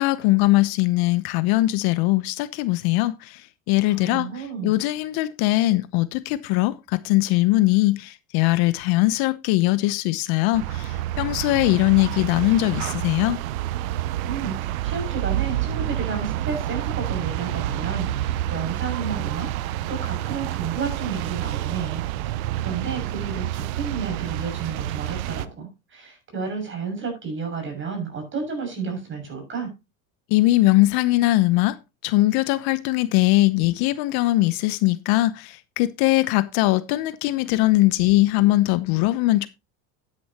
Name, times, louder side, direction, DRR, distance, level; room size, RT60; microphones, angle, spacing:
voice 1, 0.0-3.4 3.7-4.3 4.6-13.4 30.3-31.8 32.0-39.5, left 18 dB, 60° left, 0.9 m, -21 dB
voice 2, 3.9-4.7 14.3-29.7, right 5 dB, 30° right, 6.7 m, -32 dB
sound 1, 10.5-25.5, right 13 dB, 90° right, 0.8 m, -28 dB
11.5 x 10.0 x 2.9 m
supercardioid pair, 125°, 41 cm